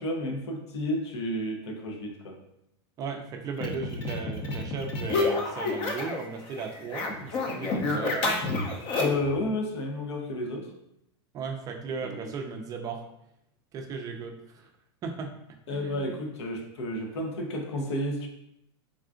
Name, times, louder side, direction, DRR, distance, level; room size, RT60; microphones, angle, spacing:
voice 1, 0.0-2.4 8.9-10.7 12.0-12.3 15.7-18.3, left 1 dB, 85° left, 2 dB, 0.6 m, -31 dB
voice 2, 3.0-8.5 11.3-13.0 13.7-14.7 15.0-15.3 15.7-16.1, right 5 dB, 25° right, 3 dB, 0.3 m, -36 dB
sound 1, 3.6-6.3 6.5-9.3, left 3 dB, 40° left, 0.5 m, -29 dB
3.6 x 2.3 x 2.4 m, 0.80 s
supercardioid pair, 140°, 14 cm